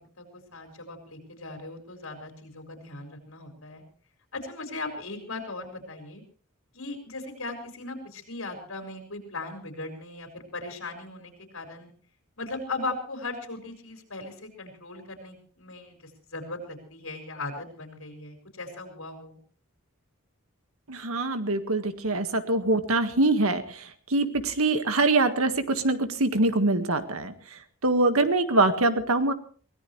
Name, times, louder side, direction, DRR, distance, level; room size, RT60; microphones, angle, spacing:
voice 1, 0.2-3.8 4.3-6.2 6.7-11.9 12.4-19.4, left 2 dB, 70° left, 5 dB, 5.0 m, -38 dB
voice 2, 20.9-27.3 27.8-29.3, right 2 dB, 85° right, 9 dB, 1.7 m, -24 dB
23.5 x 17.5 x 3.2 m, 0.42 s
head